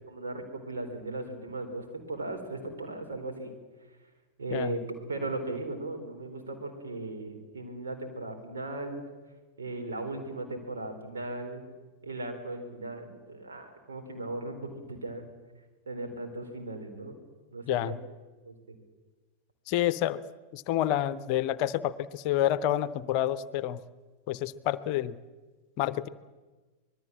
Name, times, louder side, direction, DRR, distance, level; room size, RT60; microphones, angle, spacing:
voice 1, 0.1-3.5 4.4-4.8 5.1-9.0 9.6-11.6 12.0-15.2 15.9-17.1 17.5-17.9 18.4-18.5, right 2 dB, 70° right, 5 dB, 4.1 m, -37 dB
voice 2, 17.7-18.0 19.7-20.2 20.5-23.8 24.3-25.2 25.8-26.1, left 12 dB, 45° left, 16 dB, 0.8 m, -28 dB
25.5 x 20.0 x 7.4 m, 1.3 s
figure-of-eight pair, 90°, 0 cm